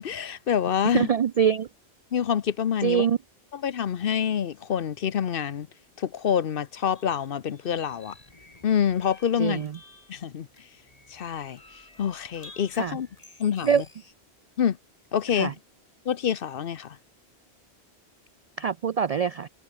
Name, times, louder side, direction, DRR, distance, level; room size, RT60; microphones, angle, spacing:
voice 1, 0.0-1.1 2.1-3.0 3.5-5.7 6.0-8.1 8.6-9.6 10.1-10.5 11.1-13.1 13.4-13.8 14.6-14.8 15.1-15.5 16.0-17.0, left 8 dB, 60° left, 0.9 m, -27 dB
voice 2, 0.9-1.7 2.8-3.2 9.4-9.8 12.7-13.0 13.6-13.8 15.3-15.5 18.6-19.5, right 7 dB, 60° right, 0.4 m, -24 dB
sound 1, 6.7-14.1, left 2 dB, 35° left, 2.6 m, -53 dB
omnidirectional pair, 1.1 m